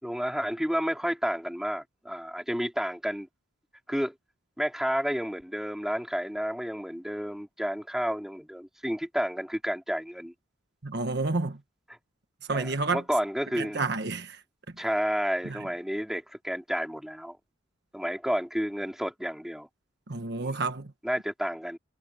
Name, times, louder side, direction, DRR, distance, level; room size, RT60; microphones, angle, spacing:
voice 1, 0.0-3.3 3.9-4.1 4.6-10.3 12.5-13.8 14.8-17.4 17.9-19.7 20.4-20.6 21.0-21.8, equal, ahead, 3.8 m, -31 dB
voice 2, 10.8-11.6 12.5-13.0 13.6-14.4 15.4-15.6 20.1-20.9, right 3 dB, 55° right, 1.4 m, -30 dB
head